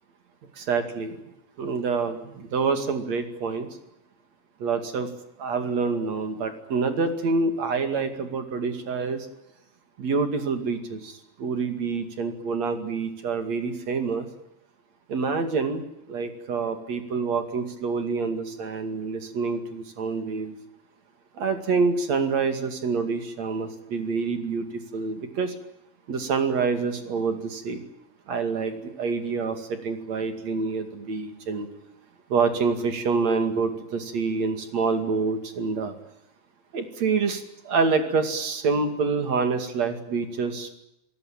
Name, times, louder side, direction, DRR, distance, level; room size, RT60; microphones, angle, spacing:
voice 1, 0.6-1.2 1.6-3.7 4.6-5.1 5.4-9.3 10.0-14.3 15.1-20.5 21.3-24.6 24.9-25.5 26.1-27.8 28.3-31.7 32.3-35.9 36.7-40.7, right 4 dB, 45° right, 8 dB, 2.9 m, -27 dB
28.0 x 17.5 x 9.0 m, 0.86 s
omnidirectional pair, 5.3 m